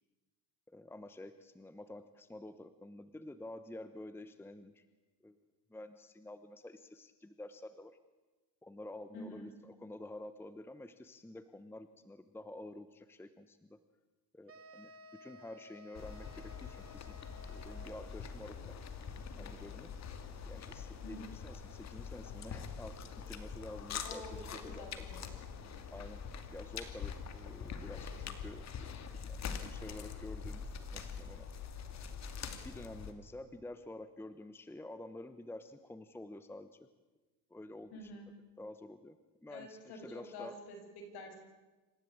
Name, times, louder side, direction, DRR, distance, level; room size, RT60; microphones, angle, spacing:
voice 1, 0.7-4.9 5.2-5.4 5.7-8.0 8.6-13.8 14.3-14.9 15.2-17.2 17.5-18.8 19.4-19.9 20.4-25.1 25.9-26.2 26.5-31.5 32.6-36.9 37.5-38.2 38.6-39.2 39.4-40.6, left 1 dB, 5° left, 11 dB, 0.9 m, -49 dB
voice 2, 9.1-9.5 21.0-21.3 24.0-25.3 37.9-38.3 39.5-41.4, left 1 dB, 60° left, 4 dB, 6.8 m, -48 dB
sound 1, 14.5-18.1, left 1 dB, 30° right, 1.8 m, -56 dB
sound 2, 15.9-33.1, left 6 dB, 40° left, 2.5 m, -44 dB
27.5 x 15.0 x 8.7 m, 1.2 s
cardioid pair, 120°, 43 cm